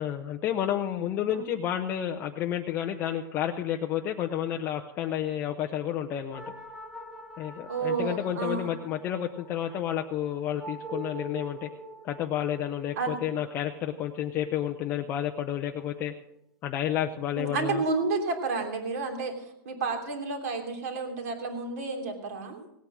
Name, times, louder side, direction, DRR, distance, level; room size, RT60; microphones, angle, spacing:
voice 1, 0.0-6.4 7.4-11.7 12.0-16.1 16.6-17.8, left 10 dB, 15° left, 3 dB, 0.5 m, -30 dB
sound 1, 6.3-15.1, right 1 dB, ahead, 1.0 m, -45 dB
voice 2, 7.7-8.7 13.0-13.2 17.4-22.6, right 4 dB, 45° right, 4 dB, 3.0 m, -31 dB
17.5 x 8.8 x 6.1 m, 0.80 s
hypercardioid pair, 170°, 12 cm